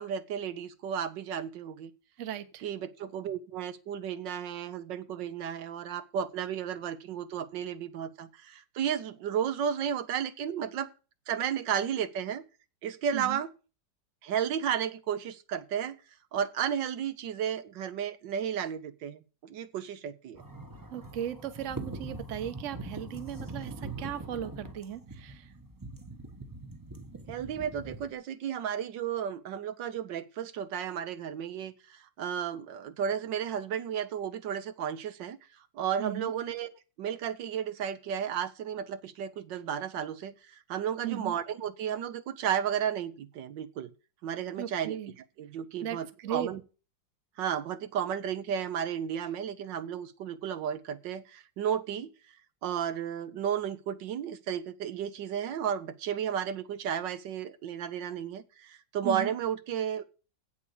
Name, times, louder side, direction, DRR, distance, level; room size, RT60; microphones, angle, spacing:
voice 1, 0.0-1.9 2.6-10.9 11.3-12.4 12.8-13.5 14.2-16.0 16.3-20.4 27.3-35.4 35.7-36.7 37.0-43.9 44.2-45.0 45.4-46.6 47.4-52.1 52.6-60.0, right 8 dB, 85° right, 11 dB, 1.5 m, -33 dB
voice 2, 2.2-2.6 13.1-13.4 20.9-25.5 36.0-36.3 41.0-41.3 44.6-45.1 45.8-46.5 59.0-59.3, right 10 dB, 50° right, 11 dB, 1.1 m, -37 dB
sound 1, 20.4-28.1, right 2 dB, 15° right, 0.7 m, -42 dB
8.3 x 7.2 x 6.9 m, 0.33 s
omnidirectional pair, 1.9 m